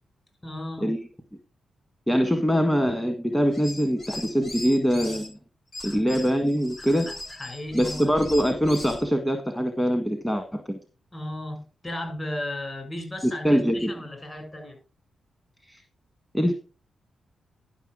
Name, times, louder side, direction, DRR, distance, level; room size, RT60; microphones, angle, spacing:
voice 1, 0.4-0.9 5.8-6.0 6.8-8.1 11.1-14.8, left 1 dB, 30° left, 6.4 m, -35 dB
voice 2, 2.1-5.4 5.8-7.1 7.7-10.8 13.2-13.9 15.7-15.8 16.3-16.5, equal, 10° left, 1.6 m, -23 dB
sound 1, 3.5-5.3 5.7-9.0, left 1 dB, 65° left, 5.7 m, -39 dB
11.5 x 6.1 x 4.9 m
supercardioid pair, 55°, 0 cm